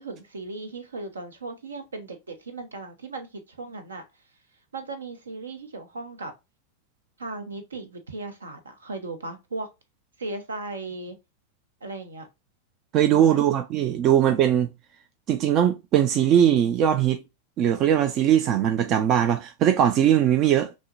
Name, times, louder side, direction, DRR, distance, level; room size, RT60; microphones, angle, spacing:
voice 1, 0.0-4.0 4.7-6.3 7.2-9.7 10.2-11.2 11.8-12.3 13.0-13.4, right 3 dB, 70° right, 0.9 m, -37 dB
voice 2, 12.9-14.7 15.3-17.2 17.6-20.7, right 10 dB, 35° right, 0.4 m, -20 dB
6.0 x 2.1 x 2.5 m
figure-of-eight pair, 90°, 0 cm